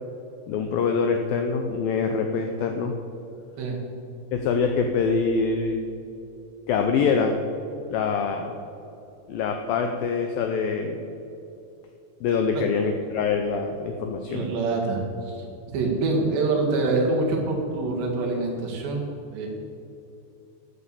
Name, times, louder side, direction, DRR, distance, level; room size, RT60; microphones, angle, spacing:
voice 1, 0.5-2.9 4.3-5.9 6.7-7.4 7.9-8.6 9.3-11.1 12.2-14.5, left 5 dB, 85° left, 4 dB, 2.0 m, -24 dB
voice 2, 14.3-15.4 15.7-19.5, right 3 dB, 75° right, -1 dB, 4.2 m, -25 dB
13.0 x 8.6 x 7.0 m, 2.7 s
omnidirectional pair, 5.1 m